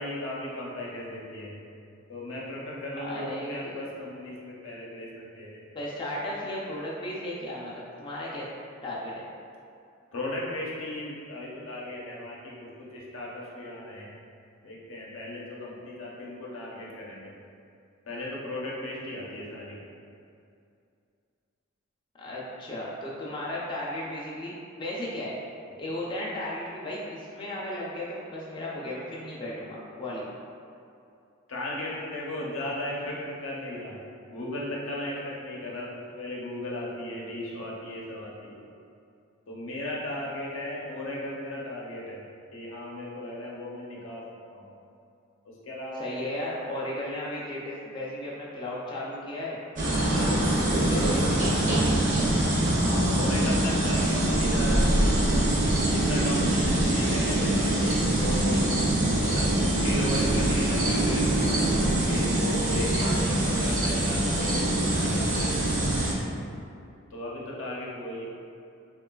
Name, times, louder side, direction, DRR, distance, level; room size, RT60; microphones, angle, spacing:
voice 1, 0.0-1.6 2.1-5.8 10.1-14.1 14.6-17.3 18.1-19.8 31.5-38.6 39.5-42.3 42.5-44.2 44.5-44.7 45.4-46.4 52.8-55.5 55.9-58.8 59.1-65.8 67.1-68.2, left 1 dB, 85° left, -4 dB, 0.6 m, -36 dB
voice 2, 3.0-3.8 5.7-8.5 8.8-9.3 22.2-25.4 25.8-30.3 45.9-49.6 50.1-52.0, left 1 dB, 25° left, -6 dB, 0.3 m, -35 dB
sound 1, 49.8-66.1, right 1 dB, 40° right, 0.5 m, -24 dB
3.6 x 2.3 x 2.2 m, 2.5 s
head